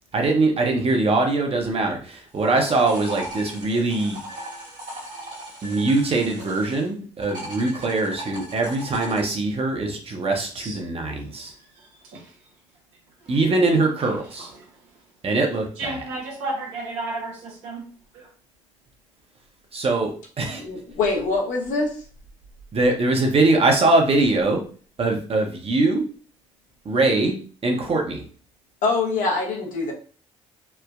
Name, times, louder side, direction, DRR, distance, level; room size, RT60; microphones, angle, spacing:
voice 1, 0.1-4.2 5.6-11.5 13.3-14.5 15.2-16.0 19.7-20.6 22.7-24.6 25.0-26.1 26.8-28.2, right 2 dB, 45° right, 2 dB, 0.8 m, -22 dB
sound 1, 2.3-6.9 7.2-9.2, right 1 dB, 60° right, 1.5 m, -38 dB
voice 2, 11.6-12.4 13.2-13.4 14.0-14.1 14.4-15.0 15.8-17.9 18.1-18.3, right 2 dB, 85° right, -1 dB, 0.8 m, -34 dB
voice 3, 20.6-22.0 28.8-29.9, left 3 dB, 70° left, 0 dB, 0.8 m, -24 dB
3.2 x 2.1 x 2.4 m, 0.41 s
hypercardioid pair, 50°, 14 cm